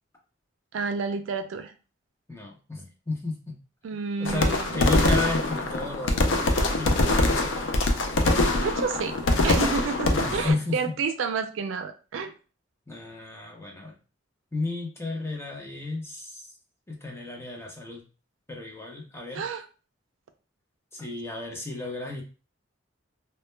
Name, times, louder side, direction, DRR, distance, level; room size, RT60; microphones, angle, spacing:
voice 1, 0.7-1.7 3.8-4.8 8.6-9.1 9.4-12.3 19.3-19.6, right 5 dB, 85° right, 8 dB, 0.4 m, -30 dB
voice 2, 2.3-3.5 4.2-7.7 10.1-10.8 12.9-13.9 14.5-16.5 16.9-18.0 18.5-19.4 20.9-22.2, left 2 dB, 15° left, 0 dB, 0.6 m, -33 dB
sound 1, 4.3-10.5, left 2 dB, 70° left, 0.4 m, -23 dB
2.1 x 2.1 x 3.1 m, 0.35 s
head